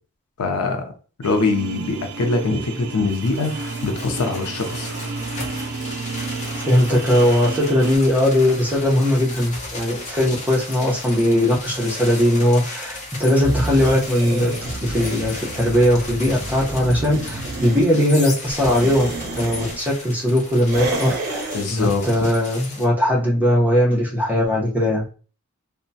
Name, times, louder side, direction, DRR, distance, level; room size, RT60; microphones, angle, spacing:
voice 1, 0.4-0.9 1.2-4.9 21.5-22.3, left 3 dB, 90° left, 5 dB, 0.6 m, -23 dB
sound 1, 1.2-8.0, right 4 dB, 85° right, 0.4 m, -31 dB
sound 2, 3.1-22.9, left 2 dB, 30° left, 0.7 m, -35 dB
voice 2, 6.7-19.1 19.3-25.0, left 1 dB, 5° right, -4 dB, 0.8 m, -19 dB
sound 3, 13.4-17.9 18.5-19.8 20.7-21.7, right 2 dB, 45° right, 0.7 m, -29 dB
2.9 x 2.2 x 2.6 m, 0.38 s
head